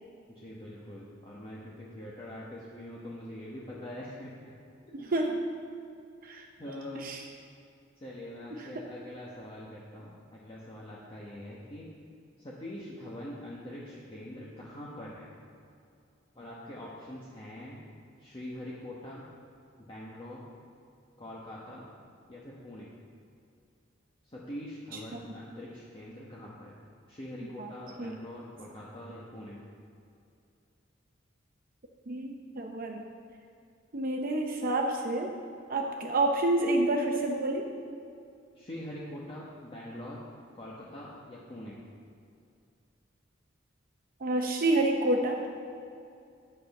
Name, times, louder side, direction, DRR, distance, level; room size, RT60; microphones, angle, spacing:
voice 1, 0.3-4.5 6.6-7.1 8.0-11.9 12.4-15.3 16.3-17.8 18.2-19.2 19.8-20.4 21.2-21.9 22.3-22.9 24.2-26.7 27.1-29.6 38.5-40.2 40.5-41.8, left 1 dB, 30° left, -6 dB, 1.2 m, -43 dB
voice 2, 4.9-5.4 6.2-6.5 7.0-7.2 8.6-8.7 25.1-25.2 27.6-27.7 28.0-28.1 32.1-33.0 33.9-35.3 35.7-37.7 44.2-45.4, right 2 dB, 50° right, 2 dB, 0.7 m, -28 dB
9.5 x 7.8 x 5.3 m, 2.5 s
head